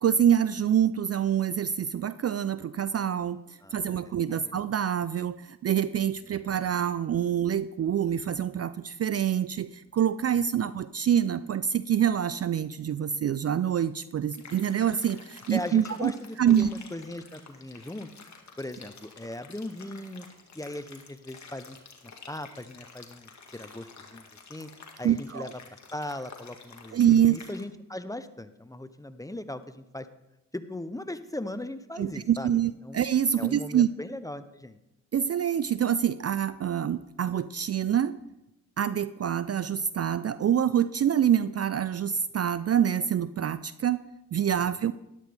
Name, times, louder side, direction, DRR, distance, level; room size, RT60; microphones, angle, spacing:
voice 1, 0.0-3.4 3.7-16.1 16.4-16.7 25.0-25.5 26.9-27.4 32.0-33.9 35.1-38.2 38.8-44.0 44.3-44.9, right 9 dB, 40° right, 15 dB, 0.4 m, -26 dB
voice 2, 3.6-4.5 10.3-10.4 15.5-18.1 18.6-20.3 20.5-21.8 22.0-24.7 25.0-25.5 25.9-30.1 30.5-33.0 33.4-34.8, left 1 dB, 10° left, 12 dB, 0.7 m, -39 dB
sound 1, 14.3-27.6, left 4 dB, 50° left, 1.9 m, -50 dB
13.0 x 11.5 x 3.4 m, 0.91 s
supercardioid pair, 55°, 37 cm